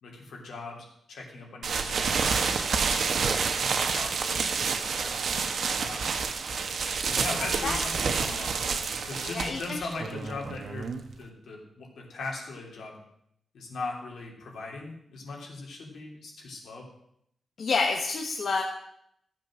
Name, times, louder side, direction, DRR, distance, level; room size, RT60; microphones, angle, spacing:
voice 1, 0.0-3.0 3.6-5.1 5.8-6.1 7.1-8.6 9.0-10.9 11.2-13.0 13.5-16.9, left 3 dB, 85° left, 0 dB, 3.3 m, -39 dB
sound 1, 1.6-11.2, right 5 dB, 65° right, 1.2 m, -29 dB
voice 2, 7.4-7.8 9.3-9.8 17.6-18.6, left 4 dB, 60° left, 2 dB, 1.2 m, -29 dB
14.0 x 7.7 x 6.4 m, 0.73 s
wide cardioid pair, 150°, 0 cm